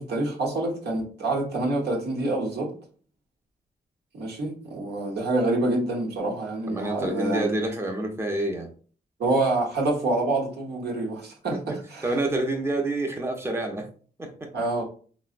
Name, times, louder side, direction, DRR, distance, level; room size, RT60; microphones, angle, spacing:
voice 1, 0.0-2.7 4.1-7.5 9.2-12.1 14.5-14.8, right 2 dB, 90° right, 0 dB, 0.9 m, -27 dB
voice 2, 6.7-8.7 11.5-13.9 14.2-14.5, right 2 dB, 15° right, 3 dB, 0.5 m, -28 dB
3.8 x 2.0 x 2.4 m, 0.42 s
cardioid pair, 95°, 17 cm